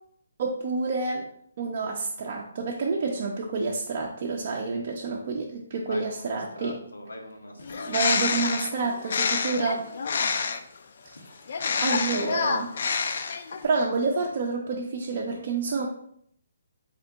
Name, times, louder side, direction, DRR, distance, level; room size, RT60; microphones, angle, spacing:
voice 1, 0.4-1.3 1.6-6.8 7.9-9.9 11.8-12.7 13.6-15.9, right 4 dB, 45° right, -2 dB, 0.5 m, -28 dB
voice 2, 5.9-7.9 11.1-11.3, left 2 dB, 85° left, 3 dB, 0.8 m, -41 dB
Bird, 7.6-10.8 11.5-13.7, left 5 dB, 55° left, 0.3 m, -27 dB
3.6 x 2.7 x 3.4 m, 0.66 s
figure-of-eight pair, 140°, 0 cm